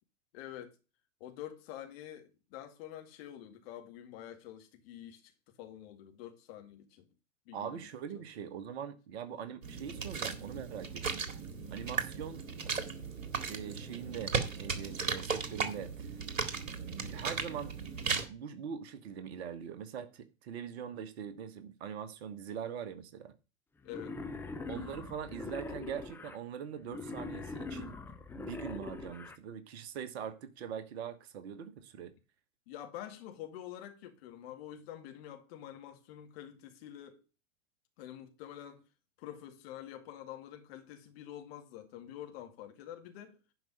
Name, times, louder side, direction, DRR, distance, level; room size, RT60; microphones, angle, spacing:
voice 1, 0.3-0.8 1.2-5.2 5.6-7.1 7.5-7.9 8.2-8.3 9.3-9.4 11.9-12.1 23.8-24.2 32.7-37.2 38.0-38.8 39.2-43.4, left 11 dB, 45° left, 2.2 m, -47 dB
voice 2, 7.5-11.2 11.7-12.4 13.5-16.2 16.8-17.7 18.1-23.3 24.7-28.0 28.3-32.1, right 8 dB, 50° right, 1.5 m, -42 dB
sound 1, 9.6-18.3, right 5 dB, 65° right, 1.9 m, -36 dB
Wild animals, 23.9-26.4 26.9-29.4, left 3 dB, 5° left, 0.6 m, -42 dB
11.0 x 5.2 x 5.4 m
figure-of-eight pair, 95°, 41 cm